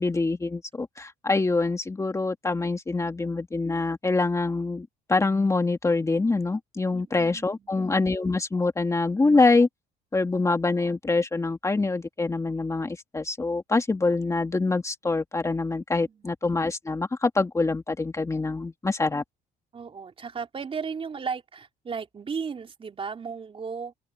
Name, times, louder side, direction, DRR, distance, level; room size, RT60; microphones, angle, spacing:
voice 1, 0.0-9.7 10.1-19.2, left 3 dB, 15° left, 2.2 m, -25 dB
voice 2, 6.9-7.8 16.1-16.3 19.7-23.9, right 5 dB, 35° right, 3.6 m, -35 dB
open air
cardioid pair, 110°, 17 cm